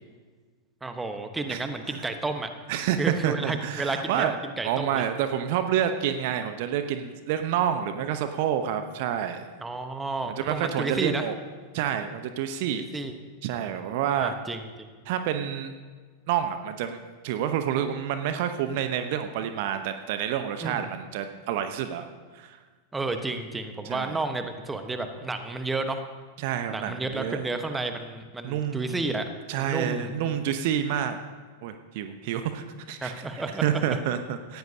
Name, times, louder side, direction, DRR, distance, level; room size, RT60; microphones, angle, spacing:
voice 1, 0.8-2.5 3.0-5.0 9.6-11.2 12.7-13.1 14.1-14.9 20.6-20.8 22.9-26.0 26.7-29.3 29.6-30.4 33.0-34.0, right 3 dB, 10° right, 7 dB, 1.2 m, -31 dB
voice 2, 2.7-4.3 4.6-9.5 10.3-11.3 11.7-12.8 13.4-14.3 15.0-15.7 16.3-22.1 22.3-22.6 23.8-24.2 26.4-27.4 28.4-29.1 29.5-31.2 31.6-34.6, right 9 dB, 50° right, 9 dB, 0.9 m, -28 dB
18.5 x 15.5 x 2.9 m, 1.5 s
figure-of-eight pair, 90°, 0 cm